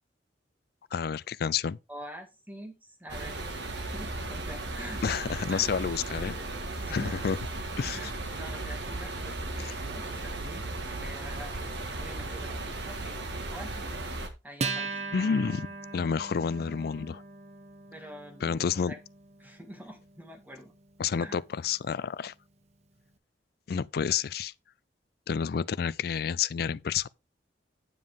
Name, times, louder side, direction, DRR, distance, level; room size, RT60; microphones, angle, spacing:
voice 1, 0.9-1.8 5.0-6.3 6.9-7.4 7.8-8.0 9.6-9.7 15.1-15.7 15.9-17.2 18.4-18.9 21.0-22.3 23.7-24.5 25.3-27.1, left 6 dB, 55° left, 0.4 m, -29 dB
voice 2, 1.9-3.4 3.7-5.0 5.3-5.7 6.2-6.5 6.8-7.2 7.9-13.2 13.5-13.9 14.4-14.9 17.9-19.0 19.4-20.7 21.1-21.4, equal, 10° right, 2.0 m, -46 dB
sound 1, 3.1-14.3, right 2 dB, 70° right, 1.6 m, -36 dB
Acoustic guitar, 14.6-21.4, right 4 dB, 40° right, 1.0 m, -39 dB
9.5 x 7.4 x 3.5 m
head